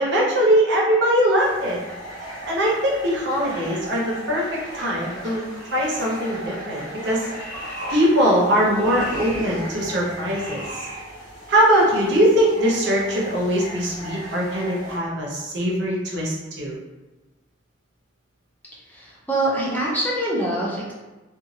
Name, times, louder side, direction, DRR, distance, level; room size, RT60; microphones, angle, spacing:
voice 1, 0.0-1.8 2.4-7.3 7.9-10.6 11.5-16.8, equal, 65° right, -3 dB, 0.7 m, -21 dB
sound 1, 1.4-15.0, equal, 50° left, 1.4 m, -36 dB
voice 2, 18.8-20.9, right 1 dB, 10° left, -6 dB, 0.6 m, -24 dB
2.9 x 2.3 x 2.7 m, 1.1 s
head